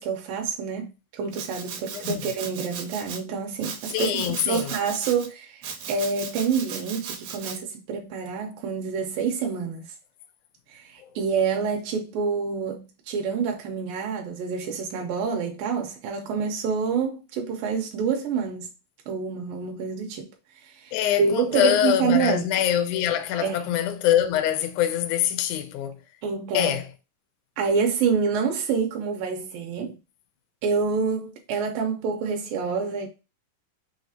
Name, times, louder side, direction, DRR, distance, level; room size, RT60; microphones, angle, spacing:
voice 1, 0.0-9.9 10.7-18.7 19.1-20.3 20.6-22.5 23.4-23.6 26.2-26.8 27.6-30.0 30.6-33.1, right 5 dB, 85° right, 2.4 m, -27 dB
Domestic sounds home sounds, 1.3-3.2 3.6-5.3 5.6-7.6, right 6 dB, 70° right, 1.7 m, -37 dB
voice 2, 3.9-4.8 20.9-26.0 26.5-26.8, left 11 dB, 80° left, 1.8 m, -24 dB
6.2 x 2.4 x 2.8 m
omnidirectional pair, 4.0 m